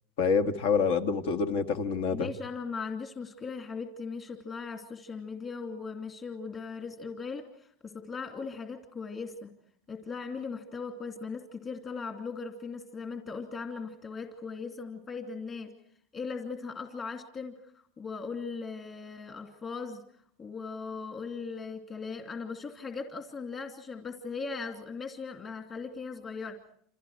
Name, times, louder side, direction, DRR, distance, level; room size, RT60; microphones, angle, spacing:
voice 1, 0.2-2.3, left 5 dB, 65° left, 7 dB, 2.0 m, -27 dB
voice 2, 2.1-9.5 9.9-15.7 16.1-17.7 18.0-20.0 20.4-26.6, left 4 dB, 25° left, 2 dB, 2.7 m, -38 dB
28.5 x 28.0 x 4.8 m, 0.64 s
supercardioid pair, 165°, 0 cm